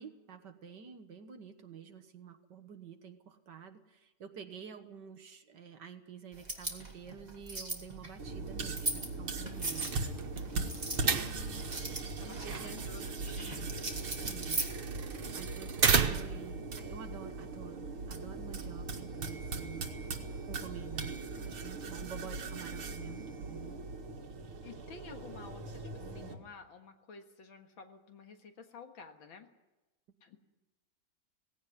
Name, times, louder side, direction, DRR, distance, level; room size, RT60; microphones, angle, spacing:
voice 1, 0.0-9.9 12.2-13.2 13.9-14.6 15.2-19.9 20.5-21.2 21.5-23.8, right 7 dB, 60° right, 8 dB, 1.8 m, -49 dB
sound 1, 6.3-15.3, right 2 dB, 20° right, 2.4 m, -41 dB
sound 2, 8.2-26.3, right 3 dB, 80° right, 2.8 m, -40 dB
sound 3, 9.5-16.5, right 5 dB, 45° right, 0.7 m, -34 dB
voice 2, 11.0-13.0 13.3-13.7 24.6-29.5 30.2-30.4, left 5 dB, 70° left, 5 dB, 2.4 m, -52 dB
18.0 x 16.5 x 9.7 m, 1.1 s
omnidirectional pair, 2.3 m